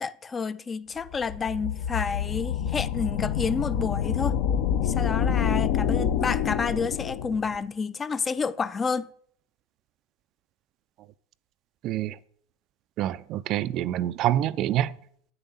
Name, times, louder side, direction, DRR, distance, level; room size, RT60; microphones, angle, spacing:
voice 1, 0.0-4.4 4.8-9.1, left 5 dB, 25° left, 0.4 m, -29 dB
sound 1, 1.1-7.6, left 8 dB, 60° left, 0.7 m, -27 dB
voice 2, 11.8-12.1 13.0-14.9, right 12 dB, 45° right, 0.3 m, -26 dB
9.1 x 6.8 x 4.1 m
hypercardioid pair, 85°, 0 cm